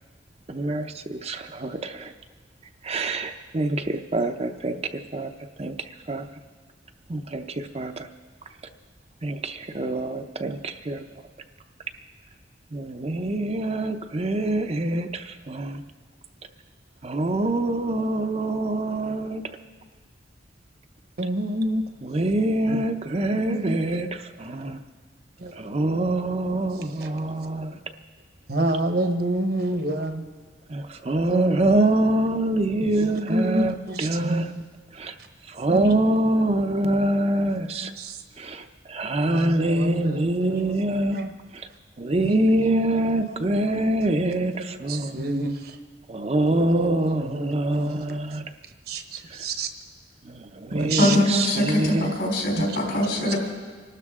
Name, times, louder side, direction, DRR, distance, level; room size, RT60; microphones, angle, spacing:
voice 1, 0.5-2.1 2.8-4.8 5.1-5.3 5.6-6.3 7.1-8.1 9.2-11.0 12.7-15.8 17.0-19.4 22.0-24.8 25.6-27.8 30.7-34.5 34.9-35.1 35.5-37.9 38.4-41.2 41.5-41.7 42.0-45.2 46.1-48.4 50.3-52.1, right 1 dB, 35° right, 7 dB, 0.6 m, -25 dB
voice 2, 21.2-21.8 22.7-22.8 23.3-23.8 24.7-24.8 25.4-25.5 28.5-30.2 31.3-32.0 32.8-34.5 35.7-36.1 37.8-38.2 39.3-40.8 41.1-41.3 42.1-43.0 43.3-43.4 43.7-43.9 44.7-45.6 46.4-48.0 48.9-49.7 50.7-51.2 52.6-52.7 53.3-53.4, right 1 dB, 60° right, 6 dB, 1.1 m, -28 dB
voice 3, 51.0-53.4, left 1 dB, 70° left, -2 dB, 4.1 m, -22 dB
26.0 x 12.5 x 3.6 m, 1.5 s
head